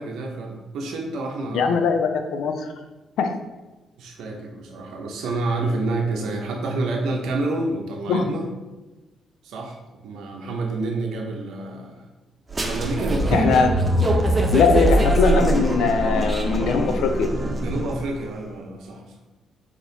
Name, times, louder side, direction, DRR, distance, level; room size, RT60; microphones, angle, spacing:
voice 1, 0.0-1.8 4.0-8.5 9.4-9.8 10.0-12.0 12.6-13.5 17.6-19.1, right 2 dB, 80° right, 1 dB, 0.7 m, -28 dB
voice 2, 1.5-2.7 3.2-3.3 8.1-8.3 13.3-13.7 14.5-17.3, left 5 dB, 80° left, 6 dB, 0.5 m, -21 dB
sound 1, 12.5-18.1, right 1 dB, 30° right, 0.6 m, -22 dB
4.1 x 3.0 x 3.9 m, 1.1 s
cardioid pair, 90°, 0 cm